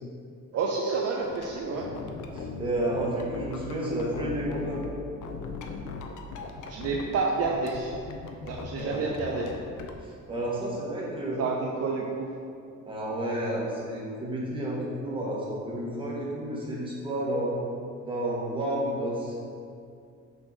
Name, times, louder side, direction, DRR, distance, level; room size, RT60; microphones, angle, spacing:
voice 1, 0.5-1.9 6.7-8.0 8.4-9.5 11.4-12.3, right 4 dB, 50° right, -1 dB, 0.6 m, -29 dB
sound 1, 1.2-4.9 5.2-7.2 7.4-9.9, left 4 dB, 70° left, 0.7 m, -39 dB
voice 2, 2.3-4.8 8.8-9.0 10.3-11.4 12.8-17.6 18.0-19.3, right 1 dB, 15° right, -5 dB, 1.5 m, -31 dB
6.2 x 5.9 x 4.8 m, 2.4 s
cardioid pair, 175°, 32 cm